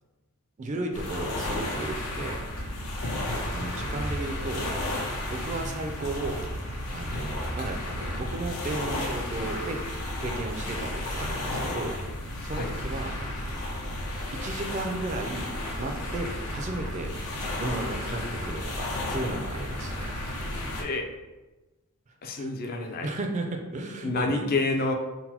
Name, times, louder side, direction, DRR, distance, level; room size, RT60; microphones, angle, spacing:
voice 1, 0.6-2.4 3.5-4.7 5.3-9.8 10.2-12.0 12.4-13.5 13.8-13.9 14.4-15.5 15.8-17.1 17.6-20.1 22.4-24.4, right 2 dB, 30° right, 4 dB, 0.3 m, -34 dB
sound 1, 0.9-20.8, left 1 dB, 90° left, 0.7 m, -33 dB
voice 2, 3.0-3.9 7.1-7.3 12.5-12.7 20.8-21.1 22.2-23.1 24.0-24.9, left 3 dB, 40° left, 4 dB, 0.4 m, -30 dB
3.9 x 2.1 x 4.2 m, 1.1 s
head